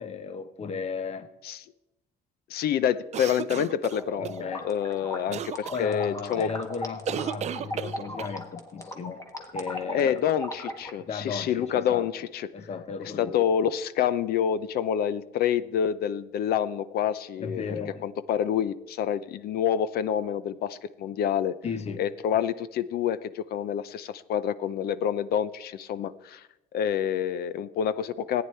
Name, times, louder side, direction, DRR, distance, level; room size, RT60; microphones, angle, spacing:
voice 1, 0.0-1.3 4.2-4.7 5.3-5.4 5.7-9.2 9.5-10.2 11.0-12.1 12.5-13.4 17.4-18.1 21.6-22.0, left 5 dB, 40° left, 12 dB, 0.9 m, -35 dB
voice 2, 2.5-6.5 9.9-12.5 13.2-17.6 18.0-21.6 22.0-26.4 26.7-28.4, left 9 dB, 65° left, 16 dB, 0.7 m, -27 dB
sound 1, 3.1-4.4 5.3-5.8 7.1-8.4, right 9 dB, 40° right, 0.5 m, -33 dB
sound 2, 3.9-10.9, left 1 dB, 20° left, 1.7 m, -38 dB
14.5 x 9.5 x 4.4 m, 0.92 s
cardioid pair, 110°, 17 cm